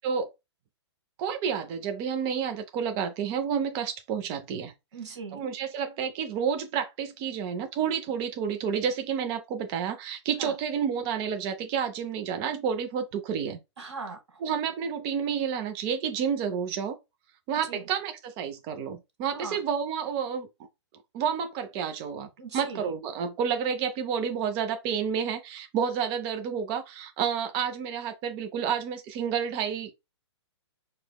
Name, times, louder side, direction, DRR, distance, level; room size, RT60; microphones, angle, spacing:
voice 1, 1.2-4.7 5.3-13.6 14.4-17.0 17.5-20.5 21.1-22.3 22.5-30.0, right 7 dB, 25° right, 0.3 m, -30 dB
voice 2, 4.9-5.4 10.4-10.5 13.8-14.4 17.6-17.9 19.3-19.6 22.4-22.9, right 4 dB, 75° right, 1.2 m, -40 dB
4.7 x 2.0 x 2.2 m
hypercardioid pair, 125°, 15 cm